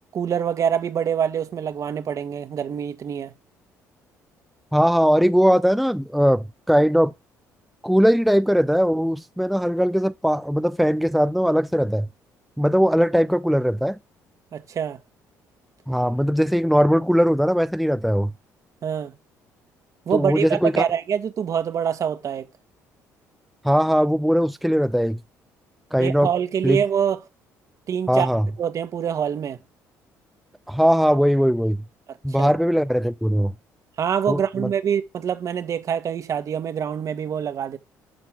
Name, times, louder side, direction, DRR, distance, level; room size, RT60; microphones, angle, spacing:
voice 1, 0.1-3.3 14.5-15.0 18.8-19.1 20.1-22.5 26.0-27.2 27.9-28.3 28.6-29.6 32.1-32.5 34.0-37.8, right 8 dB, 50° right, 1.7 m, -25 dB
voice 2, 4.7-7.1 7.8-12.1 12.6-14.0 15.9-18.3 20.1-20.9 23.6-25.2 25.9-26.3 26.6-26.8 28.1-28.5 30.7-31.8 32.2-33.5 34.3-34.7, equal, ahead, 0.4 m, -20 dB
12.0 x 4.3 x 7.6 m
supercardioid pair, 80°, 7 cm